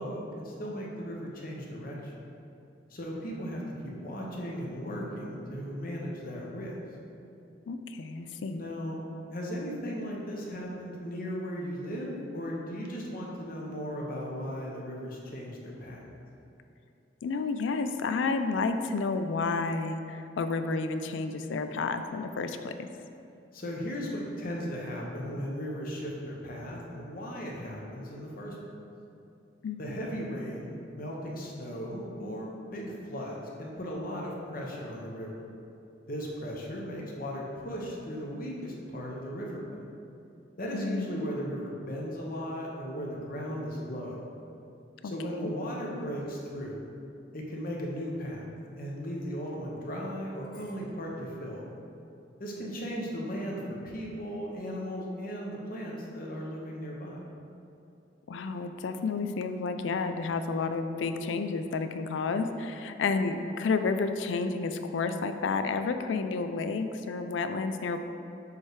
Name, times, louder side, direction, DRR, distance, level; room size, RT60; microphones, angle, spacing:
voice 1, 0.0-2.1 2.9-6.7 8.5-9.0 9.3-16.0 23.5-28.6 29.8-35.3 36.1-39.7 40.6-44.2 45.0-46.8 47.3-48.4 48.8-51.6 52.4-53.6 53.9-57.2, equal, 50° left, -2 dB, 1.0 m, -36 dB
voice 2, 7.7-8.6 17.2-22.9 29.6-29.8 40.7-41.2 45.0-45.5 58.3-68.0, left 4 dB, 80° left, 8 dB, 0.4 m, -31 dB
7.2 x 3.3 x 4.7 m, 2.7 s
head